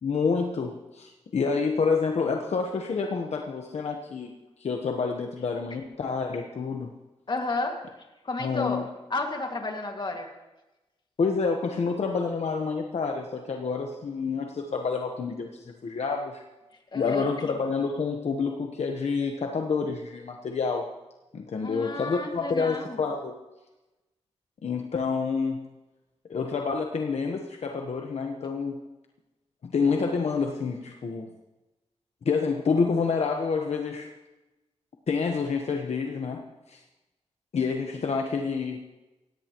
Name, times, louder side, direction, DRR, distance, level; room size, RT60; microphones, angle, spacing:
voice 1, 0.0-4.3 4.6-6.9 8.4-8.8 11.2-16.4 16.9-20.9 21.3-23.4 24.6-25.6 26.3-28.8 29.6-31.3 32.2-34.1 35.1-36.8 37.5-38.8, left 5 dB, 70° left, 3 dB, 1.2 m, -28 dB
voice 2, 7.3-7.8 8.2-8.9 9.1-10.3 16.9-17.3 21.6-23.0, left 2 dB, 40° left, 3 dB, 2.1 m, -31 dB
17.5 x 17.0 x 3.1 m, 1.0 s
wide cardioid pair, 100°, 12 cm